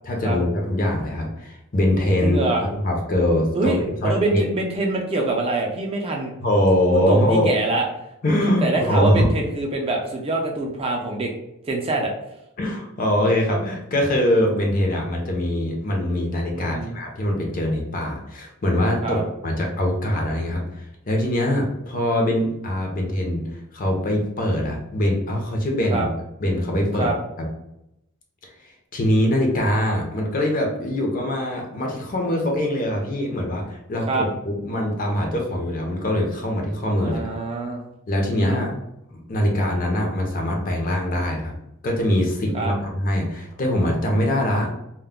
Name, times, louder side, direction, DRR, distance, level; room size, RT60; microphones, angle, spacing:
voice 1, 0.0-2.4 2.8-4.4 6.4-7.5 8.2-9.3 12.6-23.4 23.7-26.1 26.4-27.1 28.9-37.2 38.1-38.7 39.1-41.5 41.8-44.7, left 1 dB, 40° left, 1 dB, 0.6 m, -23 dB
voice 2, 2.2-2.7 3.5-6.3 6.9-7.9 8.6-11.3 11.7-12.1 16.5-17.0 19.0-19.2 25.9-26.1 27.0-27.2 34.1-34.3 37.0-37.8 38.4-38.6 42.5-42.7, right 2 dB, 25° right, 1 dB, 0.4 m, -24 dB
2.2 x 2.0 x 3.6 m, 0.83 s
head